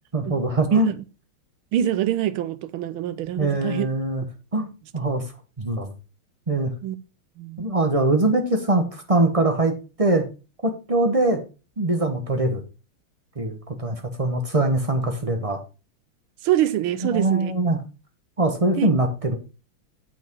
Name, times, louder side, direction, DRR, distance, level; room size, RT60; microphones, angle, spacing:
voice 1, 0.1-0.9 3.4-4.2 4.5-4.7 4.9-5.2 5.6-5.9 6.5-6.7 7.6-10.2 10.6-11.4 11.8-12.6 13.4-15.6 17.1-17.8 18.4-19.4, right 2 dB, 30° right, 0.7 m, -22 dB
voice 2, 0.7-1.0 1.7-3.9 6.8-7.0 7.4-7.7 16.4-17.5 18.7-18.9, right 11 dB, 75° right, 1.5 m, -25 dB
8.4 x 6.0 x 4.5 m
omnidirectional pair, 2.4 m